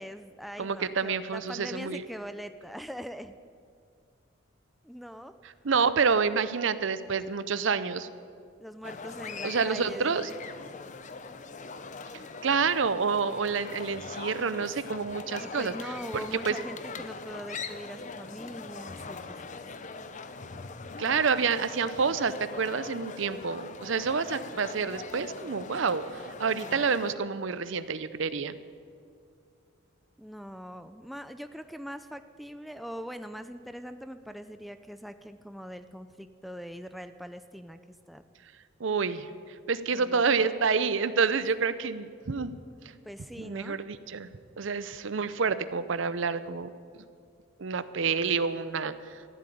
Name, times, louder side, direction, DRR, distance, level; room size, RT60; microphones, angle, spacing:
voice 1, 0.0-3.3 4.8-5.4 8.6-10.3 15.4-19.8 26.5-26.8 30.2-37.8 38.1-38.2 39.9-40.5 43.0-43.8, equal, ahead, 9 dB, 0.4 m, -42 dB
voice 2, 0.6-2.0 5.4-8.1 9.4-10.3 12.4-15.7 16.1-16.6 21.0-28.5 38.8-42.5 42.8-42.9 43.4-44.3 44.6-46.7 47.6-49.3, right 5 dB, 65° right, 14 dB, 0.6 m, -28 dB
sound 1, 8.8-27.1, left 4 dB, 35° left, 0.6 m, -41 dB
14.0 x 7.9 x 10.0 m, 2.2 s
head